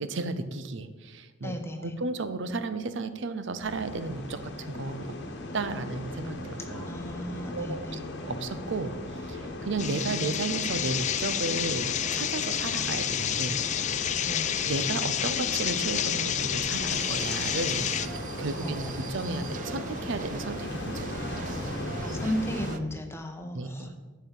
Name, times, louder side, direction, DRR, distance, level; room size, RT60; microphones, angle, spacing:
voice 1, 0.0-5.1 5.5-6.9 7.5-13.6 14.6-21.6 23.5-24.0, right 3 dB, 65° right, 11 dB, 0.7 m, -34 dB
voice 2, 1.4-1.9 6.7-8.0 14.2-14.5 18.6-19.0 19.3-19.5 22.0-24.0, equal, 15° left, 4 dB, 1.0 m, -35 dB
sound 1, 3.6-22.8, left 1 dB, 60° left, 1.2 m, -37 dB
sound 2, 9.8-18.1, left 10 dB, 35° left, 0.4 m, -29 dB
sound 3, 16.9-22.8, right 8 dB, 40° right, 0.3 m, -42 dB
9.4 x 5.5 x 5.5 m, 1.3 s
head